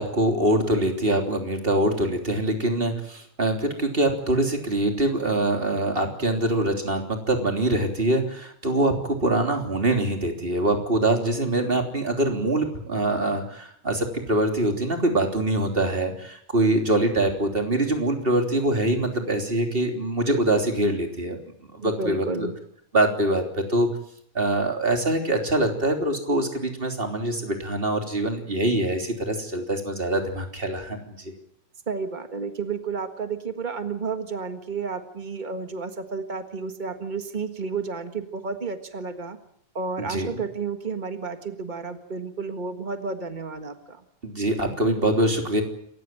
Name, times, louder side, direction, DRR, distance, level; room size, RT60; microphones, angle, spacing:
voice 1, 0.0-21.4 21.7-22.5 22.9-23.9 24.3-31.3 40.0-40.3 44.2-45.6, right 1 dB, 15° right, 4 dB, 3.2 m, -24 dB
voice 2, 21.8-22.5 31.9-39.4 39.7-44.0, right 4 dB, 90° right, 7 dB, 0.4 m, -31 dB
27.5 x 15.5 x 9.1 m, 0.71 s
omnidirectional pair, 3.7 m